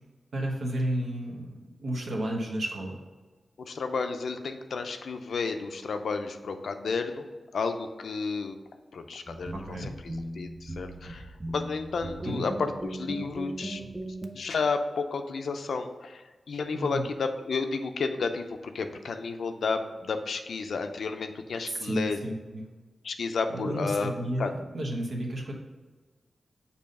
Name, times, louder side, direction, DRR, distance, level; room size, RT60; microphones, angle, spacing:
voice 1, 0.3-3.0 9.5-9.9 12.2-12.4 16.7-17.0 21.7-22.6 23.5-25.5, right 1 dB, 60° right, -1 dB, 1.0 m, -32 dB
voice 2, 3.6-7.3 7.5-8.5 8.9-11.3 11.5-13.8 14.3-22.2 23.0-24.5, left 4 dB, 75° left, 7 dB, 0.5 m, -32 dB
sound 1, 9.3-14.3, right 1 dB, 15° right, 0.5 m, -38 dB
6.9 x 2.8 x 5.2 m, 1.3 s
wide cardioid pair, 125°, 0 cm